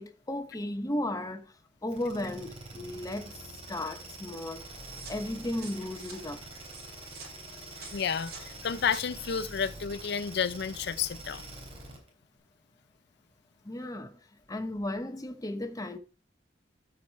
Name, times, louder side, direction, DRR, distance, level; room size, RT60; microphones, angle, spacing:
voice 1, 0.0-1.5 1.8-3.3 3.7-4.7 5.1-6.4 13.6-14.2 14.5-16.0, left 1 dB, 20° left, 1.0 m, -35 dB
sound 1, 1.9-12.1, right 2 dB, 30° right, 3.4 m, -45 dB
sound 2, 4.9-9.0, right 4 dB, 60° right, 3.4 m, -49 dB
voice 2, 7.9-11.4, left 7 dB, 65° left, 0.5 m, -31 dB
12.5 x 5.0 x 4.5 m
head